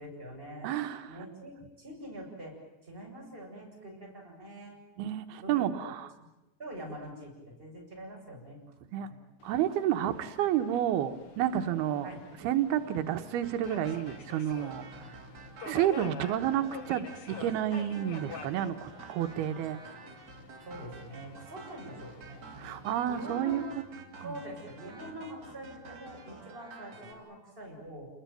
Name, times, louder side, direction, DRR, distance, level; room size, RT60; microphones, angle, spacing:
voice 1, 0.0-0.7 1.1-2.6 2.8-4.8 5.4-5.9 6.6-8.6 9.0-9.2 12.0-12.2 15.0-15.1 20.6-22.4 23.1-23.6 24.2-28.1, right 1 dB, 15° right, -1 dB, 8.1 m, -44 dB
voice 2, 0.6-1.1 5.0-6.1 8.9-9.1 9.4-12.1 12.4-15.2 15.7-19.8 22.6-23.6 24.2-24.4, right 11 dB, 90° right, 7 dB, 3.1 m, -30 dB
Subway metro underground, 9.4-23.0, left 5 dB, 45° left, 2.2 m, -49 dB
sound 1, 13.4-27.1, right 3 dB, 45° right, 4.5 m, -49 dB
29.5 x 21.5 x 9.2 m, 0.96 s
omnidirectional pair, 4.4 m